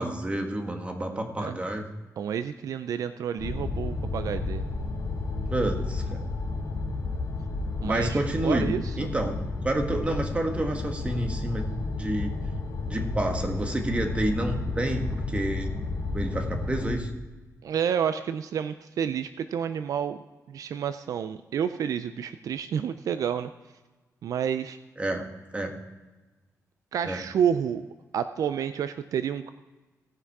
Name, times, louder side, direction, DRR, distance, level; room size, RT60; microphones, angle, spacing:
voice 1, 0.0-1.8 5.5-6.3 7.8-9.4 9.6-11.7 12.0-12.3 12.8-15.7 16.1-17.1 25.0-25.2 25.5-25.8 27.0-27.2, right 1 dB, 20° right, 3 dB, 1.5 m, -29 dB
voice 2, 2.2-4.6 7.8-9.1 17.6-20.2 20.5-23.5 24.2-24.8 26.9-27.9 28.1-29.5, right 8 dB, 70° right, 11 dB, 0.4 m, -29 dB
sound 1, 3.4-16.9, left 3 dB, 85° left, 1.9 m, -32 dB
17.5 x 5.9 x 4.7 m, 1.2 s
cardioid pair, 115°, 6 cm